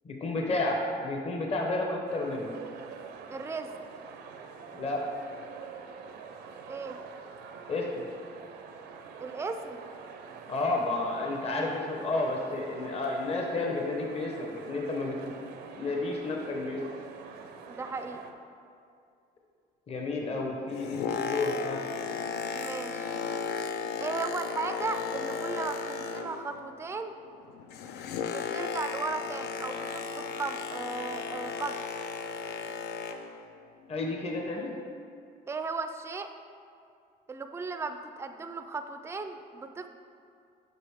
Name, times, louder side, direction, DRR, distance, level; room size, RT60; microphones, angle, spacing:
voice 1, 0.0-2.5 4.7-5.0 7.7-8.0 10.5-15.3 15.8-16.8 19.9-21.8 33.9-34.7, left 2 dB, 35° left, 0 dB, 0.9 m, -31 dB
sound 1, 2.1-18.3, right 6 dB, 75° right, 0.6 m, -46 dB
voice 2, 3.3-3.7 6.7-7.0 9.2-9.8 17.7-18.2 22.5-23.1 24.0-27.1 28.2-31.8 35.5-36.3 37.3-39.9, right 4 dB, 15° right, 8 dB, 0.4 m, -36 dB
Boat Water vehicle, 20.5-26.6 26.9-33.4 34.0-34.1, left 6 dB, 75° left, 0.5 m, -35 dB
7.7 x 5.4 x 3.5 m, 2.4 s
cardioid pair, 110°, 17 cm